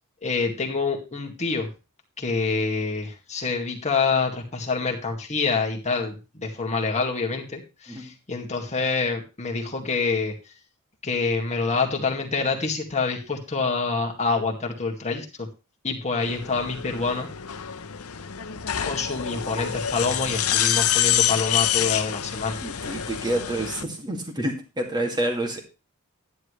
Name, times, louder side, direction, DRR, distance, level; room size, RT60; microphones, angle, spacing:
voice 1, 0.2-1.7 2.2-10.3 11.0-15.5 15.8-17.3 18.8-22.6, left 4 dB, 30° left, 1 dB, 2.1 m, -26 dB
sound 1, 16.2-23.8, left 10 dB, 70° left, 0.8 m, -27 dB
voice 2, 22.6-25.6, right 1 dB, 20° right, 2 dB, 2.3 m, -28 dB
11.5 x 10.5 x 3.3 m, 0.29 s
head